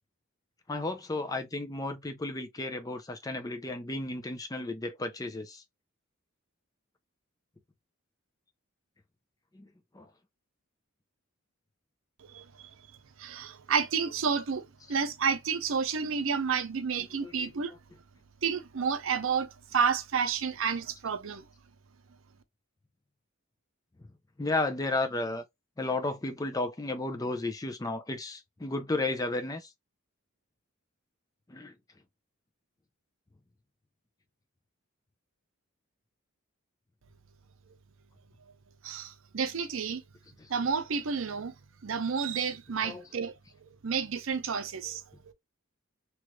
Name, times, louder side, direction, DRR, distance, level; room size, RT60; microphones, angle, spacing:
voice 1, 0.7-5.6 9.5-9.7 9.9-10.1 17.2-17.5 24.4-25.4 25.8-29.7 31.5-31.7 40.4-40.5 42.8-43.0, left 2 dB, 15° left, 0.5 m, -33 dB
voice 2, 12.2-12.7 13.2-17.7 18.4-21.4 37.7-37.8 38.8-40.0 40.5-41.6 41.8-43.3 43.7-45.3, right 6 dB, 70° right, 0.6 m, -30 dB
3.1 x 3.0 x 2.3 m
head